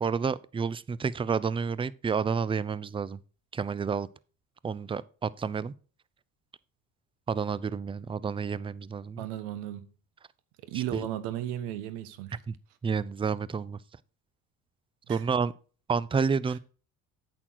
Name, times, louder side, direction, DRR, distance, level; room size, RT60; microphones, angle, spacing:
voice 1, 0.0-3.2 3.5-4.1 4.6-5.7 7.3-9.3 10.7-11.1 12.5-12.6 12.8-13.8 15.1-15.5 15.9-16.6, right 5 dB, 15° right, 0.3 m, -30 dB
voice 2, 9.2-9.9 10.7-12.4 15.1-15.2, right 12 dB, 80° right, 1.2 m, -35 dB
8.6 x 6.2 x 4.6 m
supercardioid pair, 80°, 41 cm